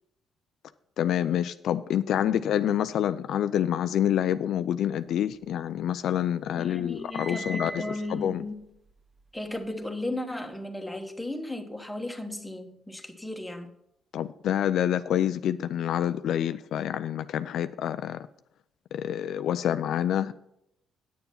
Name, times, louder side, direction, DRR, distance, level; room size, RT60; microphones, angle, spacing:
voice 1, 1.0-8.4 14.1-18.3 18.9-20.3, left 10 dB, 75° left, 0.4 m, -27 dB
sound 1, 5.1-6.1 6.5-9.9, right 2 dB, 35° right, 0.7 m, -43 dB
voice 2, 6.6-8.7 9.3-13.7, left 1 dB, 5° left, 1.3 m, -35 dB
9.4 x 7.0 x 5.5 m
cardioid pair, 90°, 0 cm